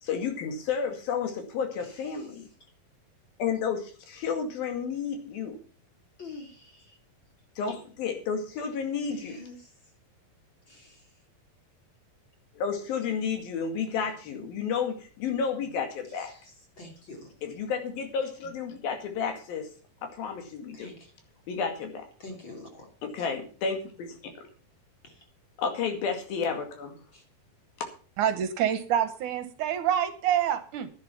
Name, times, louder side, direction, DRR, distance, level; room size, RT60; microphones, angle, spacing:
voice 1, 0.0-2.5 3.4-5.6 7.6-9.4 12.6-16.3 17.4-19.7 20.0-20.9 21.5-22.1 23.0-24.5 25.6-27.0, left 6 dB, 85° left, 5 dB, 4.1 m, -31 dB
voice 2, 6.2-6.9 9.2-9.6 10.7-11.0 16.3-16.4 16.8-17.3 20.7-20.9 22.2-22.9 25.0-25.1 27.1-27.2, left 3 dB, 35° left, 3 dB, 3.1 m, -45 dB
voice 3, 28.2-30.9, right 10 dB, 70° right, 12 dB, 2.2 m, -27 dB
11.0 x 10.5 x 5.9 m, 0.39 s
omnidirectional pair, 4.1 m